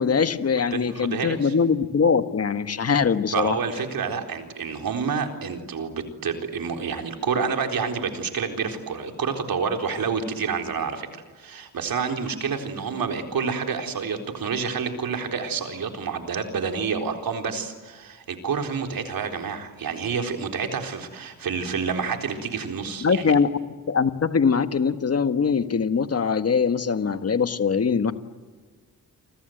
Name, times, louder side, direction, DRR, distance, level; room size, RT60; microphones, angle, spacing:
voice 1, 0.0-3.6 23.0-23.5 23.9-28.1, left 5 dB, 45° left, 10 dB, 1.5 m, -22 dB
voice 2, 0.7-1.5 3.3-11.1 11.4-23.4, right 5 dB, 75° right, 4 dB, 4.1 m, -28 dB
30.0 x 25.0 x 8.0 m, 1.4 s
cardioid pair, 100°, 35 cm